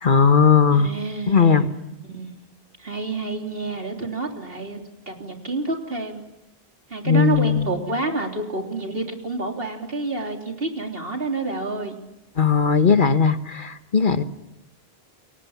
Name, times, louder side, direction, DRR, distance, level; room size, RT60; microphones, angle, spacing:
voice 1, 0.0-0.9 1.3-1.7 7.0-7.7 12.4-14.2, left 6 dB, 55° left, 10 dB, 1.4 m, -18 dB
voice 2, 0.7-2.4 2.8-4.8 5.1-6.2 6.9-12.0, right 3 dB, 65° right, 3 dB, 3.6 m, -28 dB
29.0 x 23.0 x 7.3 m, 0.91 s
omnidirectional pair, 1.0 m